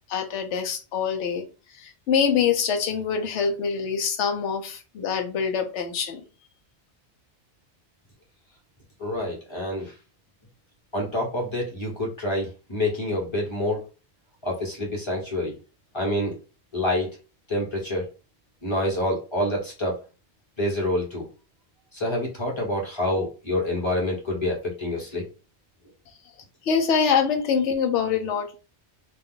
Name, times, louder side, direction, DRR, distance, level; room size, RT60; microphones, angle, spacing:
voice 1, 0.1-1.4 1.7-6.2 26.6-28.6, left 6 dB, 80° left, 5 dB, 0.9 m, -25 dB
voice 2, 9.0-9.9 10.9-13.8 14.4-15.5 15.9-16.3 16.7-17.1 17.5-18.1 18.6-20.0 20.6-21.3 21.9-25.2, left 1 dB, 25° left, -2 dB, 1.1 m, -27 dB
2.5 x 2.3 x 3.6 m, 0.32 s
omnidirectional pair, 1.2 m